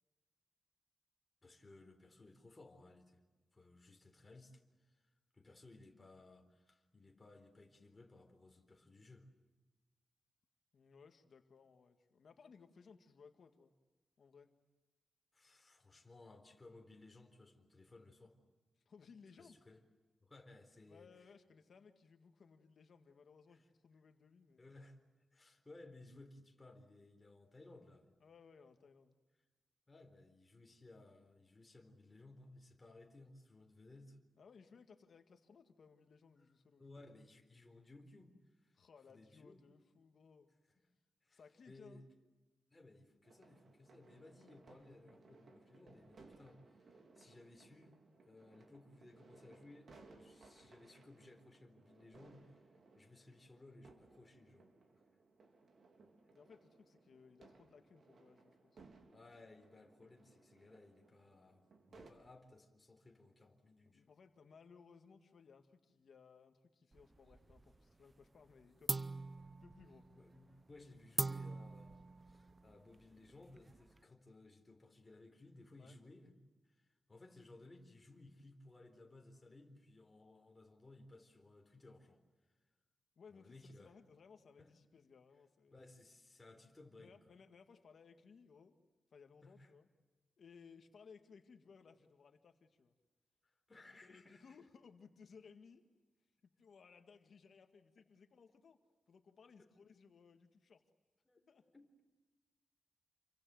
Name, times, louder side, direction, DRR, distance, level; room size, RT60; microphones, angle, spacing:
voice 1, 1.4-3.2 3.5-9.3 15.3-18.4 19.4-19.8 20.2-21.3 24.6-25.0 25.3-28.1 29.9-34.2 36.4-36.5 36.8-38.8 39.1-39.6 41.2-41.4 41.7-42.0 42.7-48.0 48.2-54.7 59.1-64.1 70.1-76.3 76.6-82.2 83.3-83.9 84.6-84.7 85.7-87.3 89.4-89.7 93.4-94.6 99.6-99.7 101.3-102.0, left 2 dB, 20° left, 3 dB, 4.0 m, -60 dB
voice 2, 10.7-13.7 14.2-14.5 18.8-19.6 20.9-24.7 28.2-29.2 34.4-37.0 38.7-40.5 41.3-42.1 56.3-58.8 63.8-69.1 69.5-70.1 75.8-76.0 83.2-85.9 87.0-88.8 89.1-89.9 90.4-93.0 94.0-95.9 96.4-98.8 99.1-100.8 101.5-101.7, left 5 dB, 60° left, 6 dB, 1.9 m, -62 dB
sound 1, 43.2-62.1, right 3 dB, 60° right, 3.6 m, -64 dB
sound 2, 66.9-67.8 68.1-68.5 68.9-74.0, right 3 dB, 20° right, 0.8 m, -43 dB
29.0 x 24.0 x 7.8 m, 1.2 s
wide cardioid pair, 155°, 0 cm